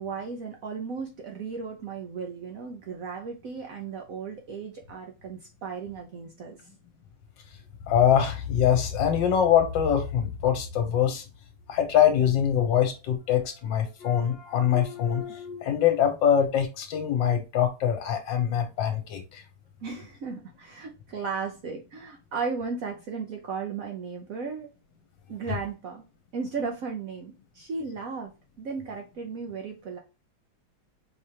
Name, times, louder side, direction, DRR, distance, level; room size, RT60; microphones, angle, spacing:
voice 1, 0.0-6.6 13.9-14.0 15.3-15.4 19.8-24.7 25.3-26.0 26.3-28.3 28.6-30.0, right 5 dB, 65° right, 0.8 m, -35 dB
voice 2, 7.9-11.2 11.7-19.4, left 9 dB, 70° left, 1.6 m, -24 dB
4.7 x 3.3 x 2.8 m
omnidirectional pair, 2.2 m